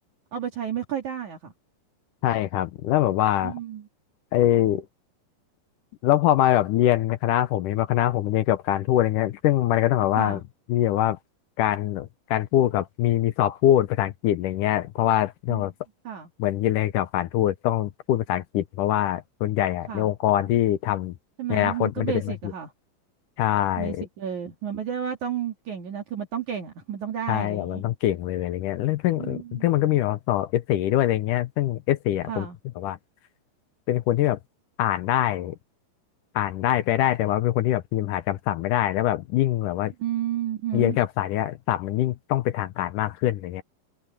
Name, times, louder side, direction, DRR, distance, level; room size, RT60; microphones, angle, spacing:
voice 1, 0.3-1.5 3.4-3.9 10.2-10.4 15.5-15.6 16.1-16.3 19.9-20.1 21.4-22.7 23.8-27.8 29.2-29.7 32.3-32.6 40.0-41.0, right 9 dB, 60° right, 3.6 m, -31 dB
voice 2, 2.2-3.6 4.3-4.9 6.0-10.4 10.7-11.2 11.6-15.7 16.4-21.1 21.5-22.3 23.4-24.1 27.3-32.5 32.8-33.0 33.9-34.4 34.8-35.6 36.4-39.9 40.7-43.6, left 13 dB, 75° left, 2.1 m, -23 dB
omnidirectional pair, 4.1 m